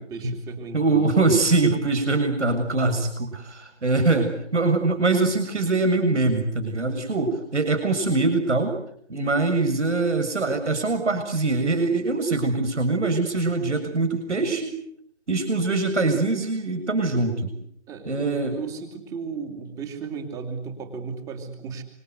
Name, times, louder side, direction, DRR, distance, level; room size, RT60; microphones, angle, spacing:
voice 1, 0.1-1.2 17.9-21.8, right 5 dB, 10° right, 6 dB, 2.9 m, -35 dB
voice 2, 0.7-8.7 9.1-14.8 15.3-17.5 18.1-18.6, right 3 dB, 90° right, 5 dB, 7.3 m, -23 dB
27.0 x 26.0 x 8.2 m, 0.71 s
hypercardioid pair, 165°, 34 cm